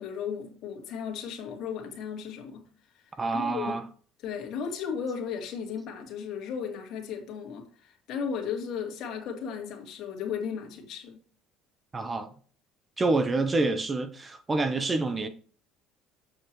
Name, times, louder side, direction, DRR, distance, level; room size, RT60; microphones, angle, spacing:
voice 1, 0.0-2.6 3.0-3.1 3.3-3.8 4.2-11.2, left 7 dB, 60° left, 2.3 m, -35 dB
voice 2, 3.2-3.8 11.9-12.3 13.0-15.3, right 3 dB, 25° right, 0.7 m, -27 dB
7.7 x 6.5 x 3.1 m
supercardioid pair, 100°, 0 cm